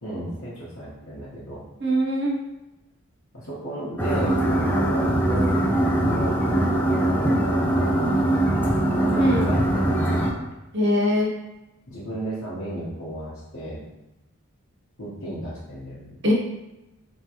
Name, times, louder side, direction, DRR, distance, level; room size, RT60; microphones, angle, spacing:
voice 1, 0.0-1.6 3.3-4.3 4.6-5.6 5.8-8.1 8.5-10.3 11.9-13.8 15.0-16.2, equal, 65° left, -10 dB, 1.1 m, -34 dB
voice 2, 1.8-2.4 9.2-9.5 10.7-11.3 16.2-16.3, equal, 55° right, -2 dB, 0.8 m, -22 dB
sound 1, 4.0-10.3, right 1 dB, 10° left, 0.4 m, -22 dB
3.5 x 3.0 x 2.9 m, 0.98 s
head